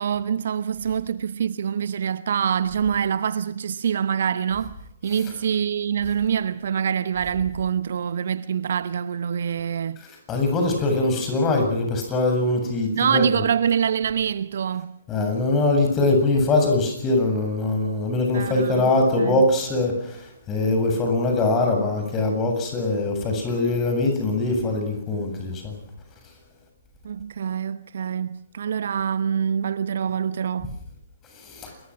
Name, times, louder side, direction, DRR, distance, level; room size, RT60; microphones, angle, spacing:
voice 1, 0.0-10.0 12.9-15.0 18.3-18.9 19.2-19.4 27.0-30.8, right 8 dB, 50° right, 0.9 m, -25 dB
voice 2, 10.3-13.2 15.1-25.8 31.5-31.7, left 2 dB, 15° left, 7.8 m, -22 dB
28.0 x 22.5 x 6.4 m
figure-of-eight pair, 125°, 0 cm